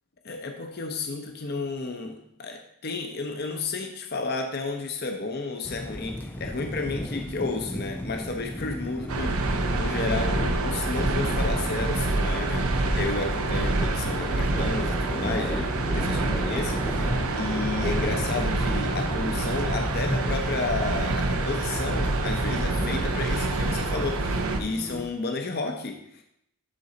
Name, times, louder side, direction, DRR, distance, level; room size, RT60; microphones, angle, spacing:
voice 1, 0.2-26.2, left 3 dB, 45° left, 4 dB, 0.7 m, -32 dB
sound 1, 5.6-25.1, left 1 dB, 10° left, 0.3 m, -35 dB
sound 2, 9.1-24.6, right 2 dB, 75° right, 0.8 m, -27 dB
11.5 x 4.2 x 4.0 m, 0.75 s
head